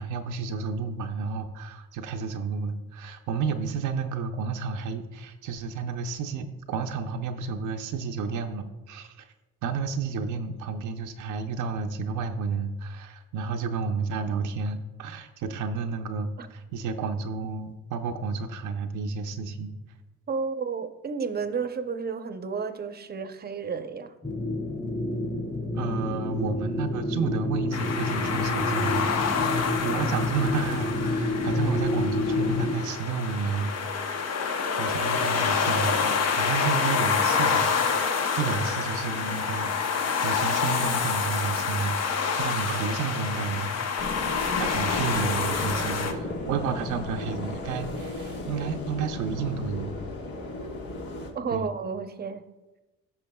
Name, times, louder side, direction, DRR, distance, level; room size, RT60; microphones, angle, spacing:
voice 1, 0.0-9.3 9.6-19.8 25.7-34.2 34.8-44.1 44.6-49.9 51.5-51.7, right 5 dB, 80° right, 5 dB, 0.6 m, -31 dB
voice 2, 20.3-24.1 51.3-52.5, right 5 dB, 30° right, 9 dB, 0.7 m, -32 dB
sound 1, 24.2-32.7, left 2 dB, 30° left, 2.6 m, -29 dB
sound 2, 27.7-46.1, left 6 dB, 55° left, 0.9 m, -27 dB
sound 3, 44.0-51.3, left 2 dB, 75° left, 1.7 m, -35 dB
14.0 x 5.7 x 2.3 m, 1.1 s
cardioid pair, 90°, 30 cm